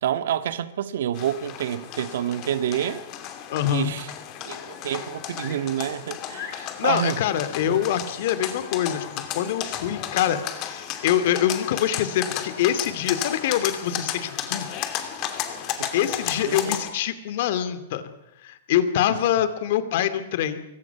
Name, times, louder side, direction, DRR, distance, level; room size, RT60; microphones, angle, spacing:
voice 1, 0.0-3.0 3.7-4.1 4.4-7.2 7.7-7.8 15.8-15.9 16.4-16.9, right 10 dB, 65° right, 1.7 m, -28 dB
sound 1, 1.1-16.9, left 10 dB, 30° left, 2.7 m, -33 dB
voice 2, 3.5-4.0 6.5-14.7 15.7-18.0 18.4-20.6, left 11 dB, 50° left, 2.4 m, -25 dB
25.5 x 23.5 x 6.0 m
supercardioid pair, 165°, 0 cm